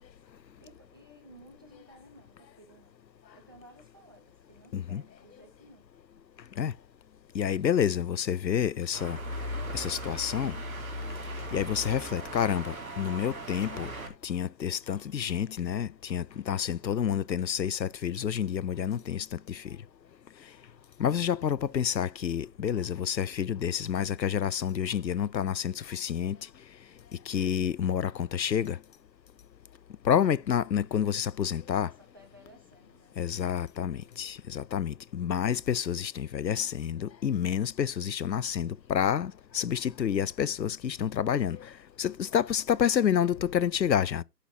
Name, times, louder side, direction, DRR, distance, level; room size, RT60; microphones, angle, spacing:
voice 1, 0.6-3.0 3.3-5.8 31.7-33.1, right 1 dB, 15° right, 0.7 m, -55 dB
voice 2, 7.3-9.2 9.7-10.5 11.5-13.9 14.2-19.8 21.0-26.4 27.3-28.8 30.0-31.9 33.2-41.7 42.0-44.2, left 8 dB, 85° left, 0.6 m, -29 dB
sound 1, 8.9-14.1, equal, 55° right, 3.0 m, -38 dB
13.5 x 5.8 x 2.7 m
figure-of-eight pair, 150°, 49 cm